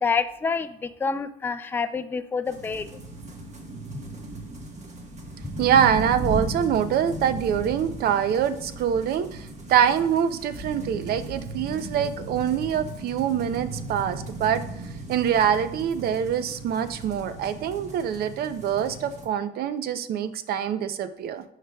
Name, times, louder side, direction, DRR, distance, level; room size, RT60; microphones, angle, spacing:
voice 1, 0.0-2.9, left 5 dB, 10° left, 10 dB, 0.3 m, -27 dB
sound 1, 2.4-19.3, right 2 dB, 40° right, 1.4 m, -36 dB
voice 2, 5.6-14.6 15.1-21.4, right 9 dB, 65° right, 12 dB, 0.6 m, -24 dB
10.0 x 4.9 x 2.3 m, 0.74 s
cardioid pair, 110°, 17 cm